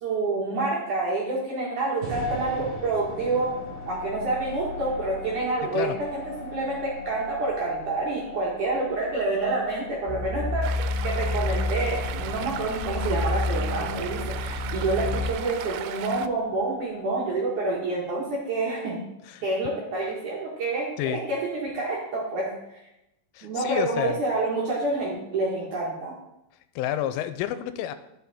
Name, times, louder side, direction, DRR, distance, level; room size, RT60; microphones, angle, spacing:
voice 1, 0.0-3.6 3.9-6.2 6.5-19.0 19.4-22.5 23.4-26.1, right 3 dB, 60° right, -4 dB, 2.1 m, -28 dB
sound 1, 2.0-18.2, left 2 dB, 35° right, 2.6 m, -40 dB
sound 2, 10.1-15.3, left 3 dB, 70° left, 3.6 m, -29 dB
Stream, 10.6-16.3, right 12 dB, 90° right, 3.1 m, -37 dB
voice 2, 23.3-24.2 26.8-27.9, left 12 dB, 90° left, 11 dB, 3.1 m, -29 dB
12.5 x 6.6 x 4.2 m, 0.89 s
omnidirectional pair, 5.6 m